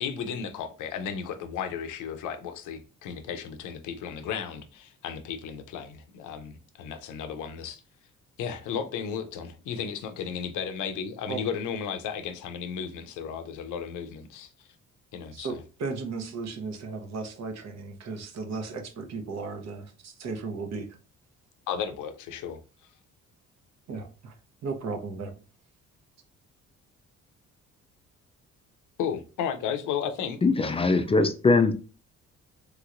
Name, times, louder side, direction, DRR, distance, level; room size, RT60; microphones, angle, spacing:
voice 1, 0.0-7.8 8.4-14.5 15.1-15.6 21.7-22.6 29.0-30.4, left 7 dB, 85° left, 0.6 m, -34 dB
voice 2, 15.3-20.9 23.9-24.3 24.6-25.3, right 4 dB, 60° right, 0.8 m, -35 dB
voice 3, 30.4-31.7, left 3 dB, 20° left, 0.3 m, -21 dB
3.2 x 3.0 x 2.5 m
cardioid pair, 90°, 30 cm